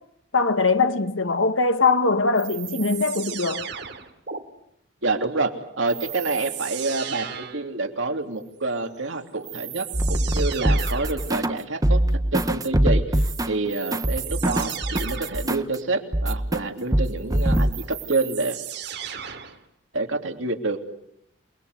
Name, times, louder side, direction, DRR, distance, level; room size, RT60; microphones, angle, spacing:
voice 1, 0.3-3.7, left 4 dB, 90° left, 1.8 m, -21 dB
sound 1, 2.3-4.4 5.9-7.7 9.0-9.1 9.4-11.3 13.7-15.5 17.2-19.6, right 9 dB, 60° right, 2.8 m, -35 dB
voice 2, 5.0-12.0 12.3-18.6 19.9-20.8, right 3 dB, 80° right, 3.2 m, -28 dB
sound 2, 9.9-11.6 11.8-15.8 16.1-16.6 16.9-17.8, right 1 dB, 20° right, 1.0 m, -23 dB
28.5 x 21.0 x 8.2 m
head